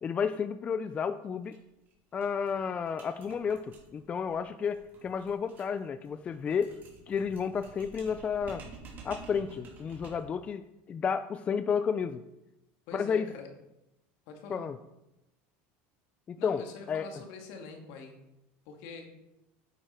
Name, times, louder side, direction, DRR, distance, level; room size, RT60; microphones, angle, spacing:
voice 1, 0.0-1.6 2.1-6.7 7.1-8.6 9.0-10.6 10.9-12.2 12.9-13.3 14.5-14.8 16.3-17.1, left 6 dB, 20° left, 11 dB, 0.4 m, -31 dB
sound 1, 1.4-1.6 1.9-2.0 2.2-10.4, right 3 dB, 35° right, 2.7 m, -51 dB
voice 2, 12.9-13.5 14.3-14.7 16.4-18.1 18.7-19.1, left 4 dB, 65° left, 3 dB, 2.1 m, -45 dB
9.3 x 9.2 x 4.4 m, 0.93 s
cardioid pair, 150°, 6 cm